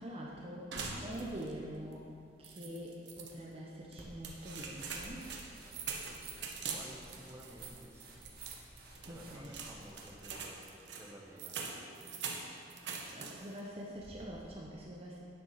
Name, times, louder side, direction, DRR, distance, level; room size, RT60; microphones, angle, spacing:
voice 1, 0.0-2.1 2.4-5.4 9.1-9.8 13.1-15.2, equal, 35° right, -3 dB, 0.9 m, -45 dB
sound 1, 0.7-1.6 1.9-2.0 2.4-3.3 3.9-13.6 14.0-14.5, right 5 dB, 85° right, 1.1 m, -44 dB
sound 2, 4.0-10.5, right 1 dB, 60° right, 1.7 m, -54 dB
voice 2, 6.7-8.2 9.0-10.7 10.9-12.2, right 1 dB, 15° right, -2 dB, 1.2 m, -54 dB
9.3 x 7.1 x 5.7 m, 2.4 s
head